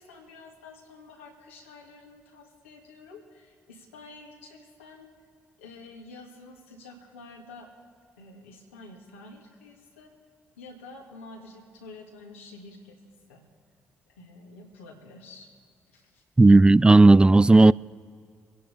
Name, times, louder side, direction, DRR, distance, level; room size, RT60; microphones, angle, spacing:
voice 1, 0.0-5.1 5.6-7.7 8.2-10.1 10.6-13.0 13.3-13.4 14.2-15.5 15.9-16.2 16.8-16.9, left 3 dB, 85° left, 2.1 m, -48 dB
voice 2, 16.4-17.7, right 2 dB, 15° right, 0.3 m, -14 dB
25.0 x 11.0 x 3.5 m
hypercardioid pair, 45°, 6 cm